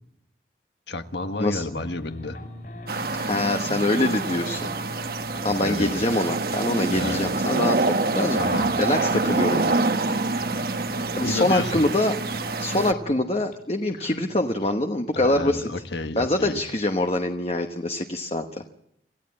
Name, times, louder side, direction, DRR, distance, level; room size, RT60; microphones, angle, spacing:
voice 1, 0.9-2.4 5.5-6.2 6.9-7.3 8.3-8.8 11.2-11.9 14.0-14.1 15.1-16.6, left 2 dB, 75° left, 8 dB, 1.5 m, -31 dB
sound 1, 1.2-15.3, left 1 dB, 50° left, 6.6 m, -40 dB
voice 2, 2.9-4.7 5.4-8.4 8.8-9.8 11.2-12.1 12.6-15.7 16.2-18.6, left 1 dB, 35° left, 6 dB, 1.1 m, -24 dB
sound 2, 2.9-12.9, right 3 dB, 55° right, 1.0 m, -26 dB
27.0 x 15.5 x 8.7 m, 0.79 s
head